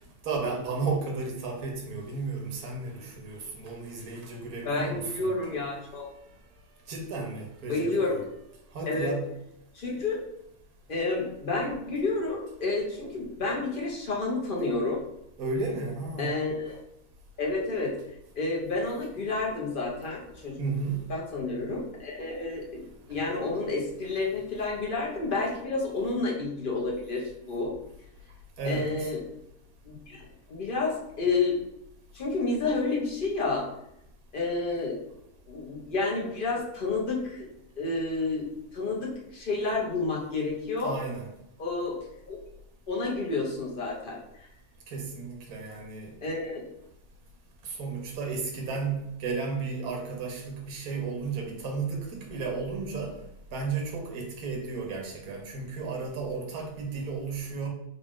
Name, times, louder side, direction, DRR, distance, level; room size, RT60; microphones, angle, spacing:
voice 1, 0.2-5.6 6.9-8.2 8.7-9.2 15.4-16.3 20.6-21.0 28.6-29.1 40.8-41.3 44.9-46.1 47.6-53.1 53.5-57.7, right 4 dB, 85° right, 0 dB, 1.2 m, -33 dB
voice 2, 4.6-6.1 7.7-8.2 8.9-9.1 9.7-10.2 10.9-15.0 16.2-16.8 17.4-17.9 18.4-20.6 21.1-27.7 28.6-29.2 29.8-31.6 32.1-33.7 34.3-35.0 35.5-37.5 37.8-38.5 38.7-40.9 41.6-42.0 42.3-42.4 42.9-44.5 46.2-46.7, left 3 dB, 45° left, -2 dB, 0.9 m, -30 dB
3.8 x 2.4 x 3.6 m, 0.81 s
omnidirectional pair, 1.5 m